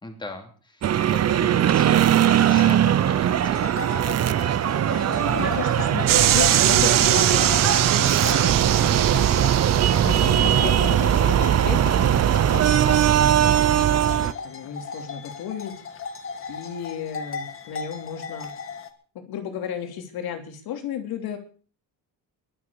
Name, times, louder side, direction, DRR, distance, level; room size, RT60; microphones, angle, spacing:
voice 1, 0.0-3.7 10.2-10.7, left 2 dB, 10° left, 4 dB, 3.2 m, -39 dB
sound 1, 0.8-14.3, right 10 dB, 45° right, 0.8 m, -20 dB
sound 2, 2.2-18.9, left 5 dB, 35° left, 1.8 m, -36 dB
voice 2, 4.9-9.5 10.0-13.0 13.6-15.7 16.5-18.5 19.1-21.4, left 8 dB, 85° left, 6 dB, 3.2 m, -34 dB
sound 3, 6.1-10.7, right 12 dB, 65° right, 1.2 m, -22 dB
22.0 x 7.4 x 7.0 m, 0.41 s
cardioid pair, 150°, 36 cm